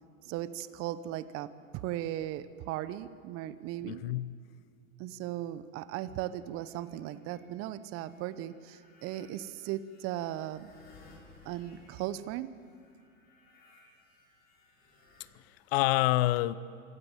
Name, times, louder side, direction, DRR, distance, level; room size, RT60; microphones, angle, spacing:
voice 1, 0.2-4.0 5.0-10.7 11.4-12.5, right 13 dB, 35° right, 0.9 m, -37 dB
voice 2, 3.8-4.4 15.3-16.6, left 17 dB, 45° left, 0.9 m, -28 dB
sound 1, 6.1-7.4 7.9-15.3, left 3 dB, 20° left, 7.1 m, -60 dB
25.0 x 17.0 x 9.1 m
hypercardioid pair, 105°, 41 cm